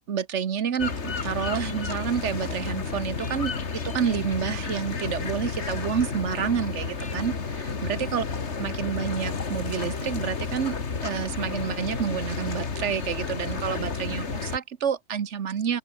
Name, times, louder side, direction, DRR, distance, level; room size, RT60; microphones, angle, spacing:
voice 1, 0.1-3.5 3.8-8.2 8.6-10.8 11.0-15.8, right 7 dB, 55° right, 1.3 m, -29 dB
sound 1, 0.8-14.6, left 4 dB, 45° left, 2.2 m, -31 dB
open air
omnidirectional pair, 1.6 m